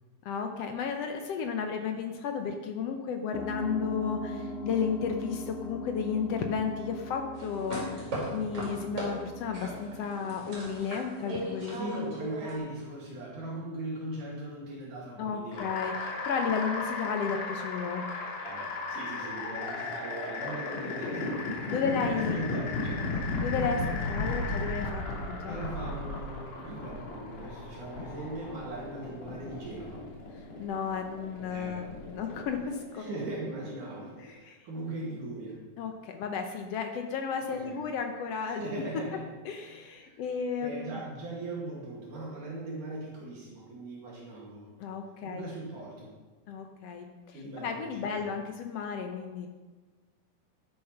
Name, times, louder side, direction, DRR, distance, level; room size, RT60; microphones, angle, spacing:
voice 1, 0.2-12.1 15.2-18.1 21.7-22.4 23.4-25.6 30.6-33.0 34.2-34.6 35.8-38.6 39.5-41.0 44.8-45.5 46.5-49.5, left 6 dB, 90° left, 5 dB, 1.4 m, -33 dB
sound 1, 3.3-11.5, equal, 10° right, 0.8 m, -41 dB
sound 2, 7.3-9.1 9.5-12.6, right 1 dB, 40° right, 5.4 m, -37 dB
voice 2, 11.7-15.7 18.4-21.4 21.7-21.8 22.2-23.2 25.5-30.1 31.5-31.9 32.9-35.6 37.5-37.8 38.5-39.2 40.0-40.2 40.6-44.7 45.2-46.1 47.3-48.3, right 2 dB, 65° right, -5 dB, 3.6 m, -40 dB
sound 3, 15.5-34.3, left 3 dB, 60° left, 4.2 m, -35 dB
11.5 x 10.0 x 5.8 m, 1.3 s
omnidirectional pair, 4.1 m